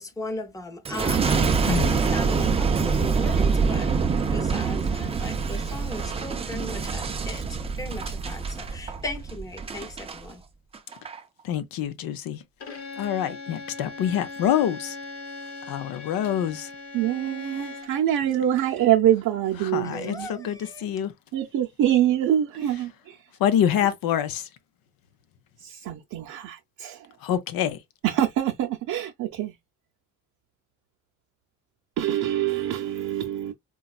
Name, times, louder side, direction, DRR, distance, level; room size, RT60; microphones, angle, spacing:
voice 1, 0.0-4.0 4.3-7.4 7.8-10.4 19.9-20.9, left 2 dB, 10° left, 0.6 m, -37 dB
Boom, 0.8-10.2 10.7-11.2, right 5 dB, 20° right, 0.3 m, -25 dB
voice 2, 11.4-12.4 13.0-15.0 15.7-16.7 19.6-21.1 23.4-24.4 27.2-27.8, left 10 dB, 80° left, 0.7 m, -26 dB
Bowed string instrument, 12.6-18.1, left 3 dB, 45° left, 0.9 m, -39 dB
voice 3, 16.9-20.5 21.3-23.2 25.6-27.0 28.0-29.5 32.0-33.5, right 11 dB, 60° right, 0.6 m, -25 dB
4.0 x 2.3 x 2.3 m
cardioid pair, 160°, 35 cm